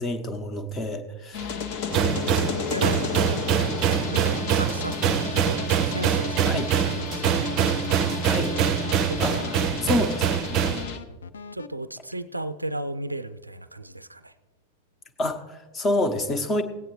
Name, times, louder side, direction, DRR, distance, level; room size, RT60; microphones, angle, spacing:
voice 1, 0.0-1.6 6.4-6.7 8.2-8.5 9.2-9.5 9.8-10.3 15.2-16.6, left 1 dB, 25° left, 8 dB, 1.0 m, -27 dB
sound 1, 1.3-11.0, left 6 dB, 45° left, 0.9 m, -33 dB
sound 2, 1.9-10.8, right 8 dB, 35° right, 0.5 m, -24 dB
voice 2, 2.1-3.4 4.1-7.4 9.0-9.5 11.5-14.3, right 1 dB, 85° right, 13 dB, 0.3 m, -35 dB
sound 3, 6.8-11.7, left 5 dB, 70° left, 0.4 m, -42 dB
18.5 x 8.9 x 3.1 m, 1.3 s
figure-of-eight pair, 90°, 0 cm